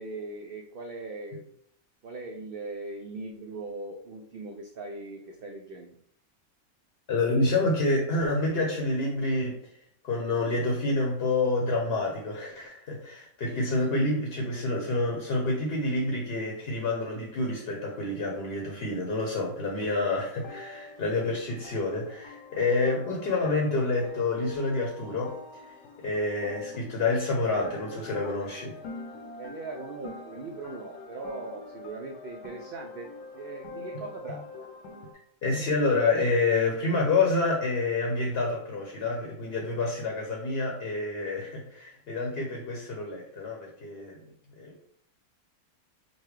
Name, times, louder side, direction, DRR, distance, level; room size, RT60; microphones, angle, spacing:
voice 1, 0.0-1.5 2.0-6.0 29.4-33.1 33.3-34.7, right 3 dB, 85° right, 2 dB, 0.4 m, -40 dB
voice 2, 7.1-9.7 10.0-25.7 26.0-28.8 34.3-34.4 35.4-44.2 44.6-44.9, left 2 dB, 50° left, -1 dB, 0.8 m, -28 dB
sound 1, 20.3-35.1, left 3 dB, 85° left, 1.2 m, -45 dB
5.3 x 2.2 x 3.1 m, 0.70 s
omnidirectional pair, 1.5 m